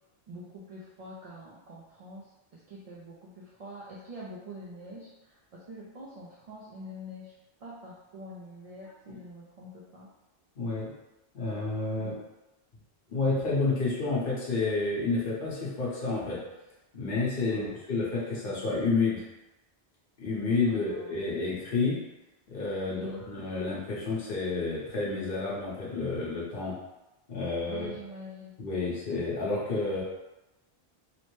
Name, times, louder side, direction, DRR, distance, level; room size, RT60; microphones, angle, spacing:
voice 1, 0.3-10.1 11.9-12.3 17.5-17.8 20.7-21.2 22.9-23.3 27.7-28.6, equal, 55° right, -6 dB, 0.4 m, -45 dB
voice 2, 10.6-10.9 11.3-12.2 13.1-16.4 16.9-19.3 20.2-22.0 22.5-26.7 27.3-27.9 28.6-30.0, left 3 dB, 55° left, -7 dB, 1.0 m, -30 dB
3.0 x 2.0 x 3.0 m, 0.99 s
omnidirectional pair, 1.1 m